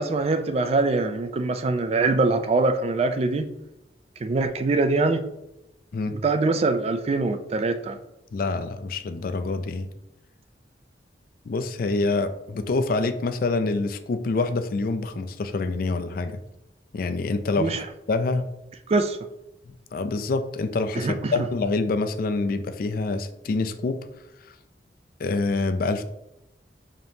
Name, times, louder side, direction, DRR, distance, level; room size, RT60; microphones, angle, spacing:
voice 1, 0.0-3.5 4.2-5.2 6.1-8.0 17.6-17.9 18.9-19.2 20.9-21.3, right 3 dB, 35° right, 9 dB, 0.3 m, -23 dB
voice 2, 8.3-9.9 11.5-16.4 16.9-17.7 18.1-18.4 19.7-24.0 25.2-26.0, left 3 dB, 55° left, 9 dB, 0.4 m, -26 dB
5.1 x 2.9 x 2.6 m, 0.89 s
head